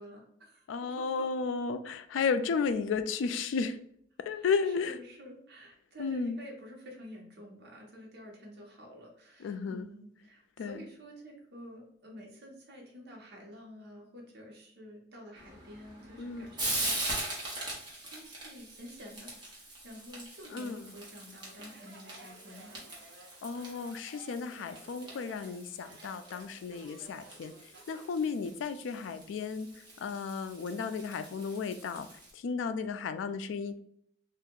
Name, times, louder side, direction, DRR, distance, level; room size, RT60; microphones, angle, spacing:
voice 1, 0.0-0.7 1.2-1.3 4.3-17.3 18.0-22.8, equal, 60° right, 0 dB, 1.0 m, -50 dB
voice 2, 0.7-3.8 4.3-5.0 6.0-6.4 9.4-9.9 10.6-10.8 16.2-16.5 20.5-20.9 23.4-32.1 32.3-33.8, left 5 dB, 90° left, 11 dB, 0.3 m, -33 dB
Frying (food), 15.4-32.3, right 2 dB, 25° right, 1.1 m, -42 dB
Speech, 21.5-28.2, right 2 dB, 80° right, 0.7 m, -55 dB
2.7 x 2.5 x 3.7 m, 0.68 s
head